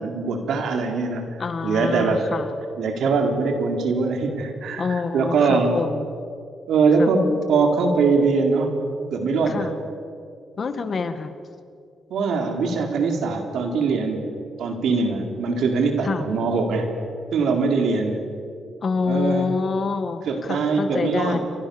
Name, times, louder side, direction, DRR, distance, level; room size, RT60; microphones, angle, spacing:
voice 1, 0.0-1.4 1.6-2.3 2.8-5.8 6.7-8.7 9.1-9.7 12.1-14.2 14.6-16.9 17.3-18.2 19.1-19.5 20.3-21.4, right 4 dB, 80° right, 4 dB, 4.2 m, -22 dB
voice 2, 1.4-2.6 4.8-6.1 7.0-7.1 9.5-9.7 10.6-11.3 16.0-16.3 18.8-21.4, left 4 dB, 40° left, 9 dB, 1.9 m, -26 dB
29.5 x 25.0 x 7.2 m, 2.4 s
cardioid pair, 135°, 0 cm